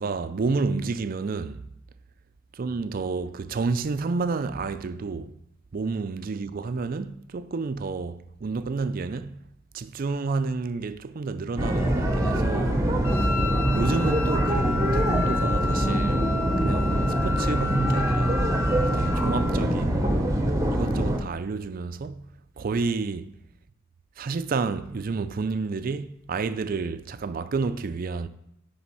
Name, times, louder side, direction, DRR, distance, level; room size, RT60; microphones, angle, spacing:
voice 1, 0.0-1.6 2.5-5.3 5.7-9.4 9.7-13.3 13.7-16.2 16.6-18.4 18.8-20.1 20.7-22.3 22.6-23.3 24.2-28.3, right 4 dB, 45° right, 0.4 m, -30 dB
sound 1, 11.6-21.2, right 1 dB, 15° right, 0.8 m, -24 dB
Wind instrument woodwind instrument, 13.0-19.6, left 5 dB, 80° left, 0.5 m, -32 dB
9.5 x 3.4 x 5.6 m
head